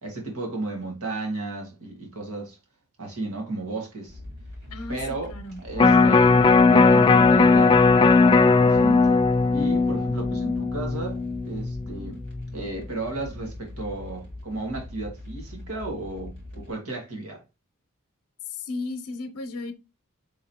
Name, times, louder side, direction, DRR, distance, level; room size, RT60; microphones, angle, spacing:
voice 1, 0.0-2.6 3.0-4.2 4.9-5.3 5.6-7.8 8.3-9.2 9.5-12.2 12.5-17.4, right 2 dB, 70° right, 1.8 m, -34 dB
sound 1, 4.1-16.7, left 1 dB, 55° right, 1.9 m, -41 dB
voice 2, 5.3-5.6 18.6-19.7, left 3 dB, 90° left, 0.8 m, -34 dB
Electric guitar, 5.8-12.0 12.4-12.5, left 4 dB, 25° left, 0.3 m, -18 dB
5.0 x 3.6 x 2.8 m
head